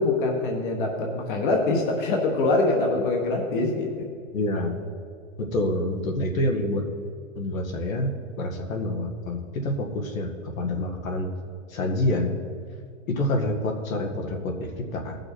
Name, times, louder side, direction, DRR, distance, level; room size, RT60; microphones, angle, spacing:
voice 1, 0.0-4.1, left 2 dB, 40° left, 1 dB, 1.3 m, -24 dB
voice 2, 4.3-4.8 5.4-6.8 7.4-8.1 8.4-10.3 10.6-11.3 11.7-12.4 13.1-15.2, left 1 dB, 80° left, 2 dB, 2.0 m, -27 dB
17.5 x 6.3 x 4.6 m, 2.4 s
supercardioid pair, 170°, 40 cm